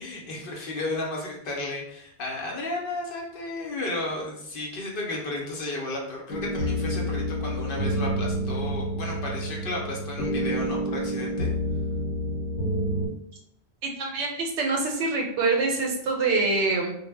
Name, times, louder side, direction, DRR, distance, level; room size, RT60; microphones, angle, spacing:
voice 1, 0.0-11.5, left 2 dB, 60° left, -1 dB, 0.7 m, -33 dB
sound 1, 6.3-13.1, equal, 90° left, 0.9 m, -28 dB
voice 2, 13.8-17.0, right 3 dB, 85° right, 1 dB, 0.9 m, -25 dB
2.1 x 2.0 x 3.2 m, 0.75 s
omnidirectional pair, 1.2 m